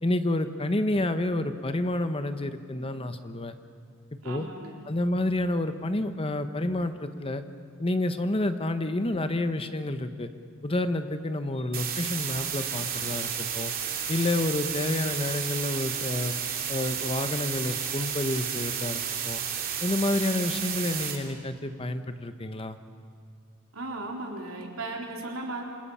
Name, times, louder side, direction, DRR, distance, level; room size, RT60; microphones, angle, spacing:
voice 1, 0.0-3.5 4.2-4.5 4.9-7.4 7.8-10.3 10.6-13.7 14.1-16.3 16.7-19.4 19.8-22.8, left 1 dB, 25° left, 9 dB, 1.0 m, -29 dB
voice 2, 4.2-4.8 23.7-25.6, right 2 dB, 85° right, 0 dB, 3.9 m, -36 dB
sound 1, 11.7-21.2, right 8 dB, 45° right, 2.9 m, -32 dB
28.5 x 26.5 x 5.7 m, 2.3 s
head